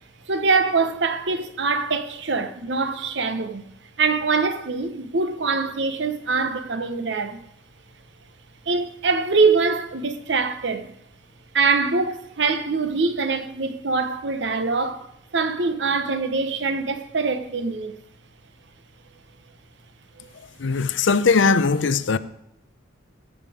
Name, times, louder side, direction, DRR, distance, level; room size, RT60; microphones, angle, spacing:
voice 1, 0.3-3.7 4.0-7.4 8.7-10.9 11.5-15.1 15.3-17.9 20.2-20.3, right 4 dB, 60° right, 0.9 m, -23 dB
voice 2, 20.6-22.2, left 4 dB, 70° left, 0.5 m, -19 dB
14.5 x 7.2 x 4.9 m
head